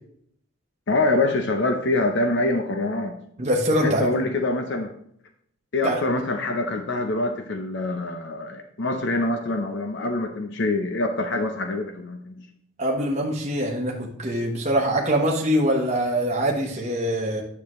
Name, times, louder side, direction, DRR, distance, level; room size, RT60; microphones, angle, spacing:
voice 1, 0.9-3.2 3.8-4.9 5.7-12.5, left 2 dB, 55° left, 5 dB, 0.7 m, -25 dB
voice 2, 3.4-4.1 5.8-6.0 12.8-17.4, equal, 30° right, -1 dB, 1.1 m, -23 dB
9.9 x 6.8 x 3.1 m, 0.69 s
head